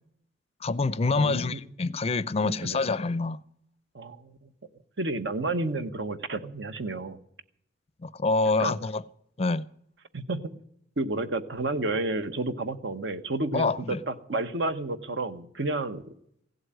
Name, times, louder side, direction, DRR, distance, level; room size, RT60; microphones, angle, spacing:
voice 1, 0.6-3.4 8.0-9.0 9.4-9.6 13.5-14.0, left 3 dB, 35° left, 0.5 m, -26 dB
voice 2, 1.2-1.6 2.4-2.8 3.9-4.4 5.0-7.2 8.6-8.8 10.1-10.5 11.0-16.0, right 2 dB, 70° right, 1.1 m, -31 dB
16.5 x 8.0 x 9.1 m
head